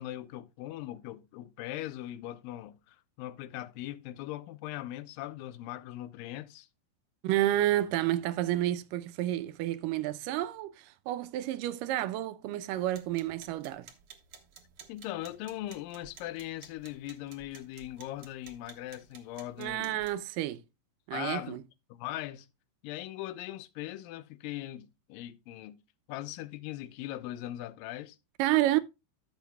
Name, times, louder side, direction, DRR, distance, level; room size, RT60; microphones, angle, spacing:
voice 1, 0.0-6.7 14.9-20.0 21.1-21.6 21.9-22.5 22.8-25.8 26.1-28.2, left 14 dB, 85° left, 2.3 m, -40 dB
voice 2, 7.2-13.9 19.6-20.6 21.1-21.6 28.4-28.8, right 14 dB, 80° right, 2.2 m, -30 dB
sound 1, 12.7-20.2, right 7 dB, 65° right, 1.5 m, -55 dB
14.0 x 7.1 x 2.2 m
omnidirectional pair, 4.0 m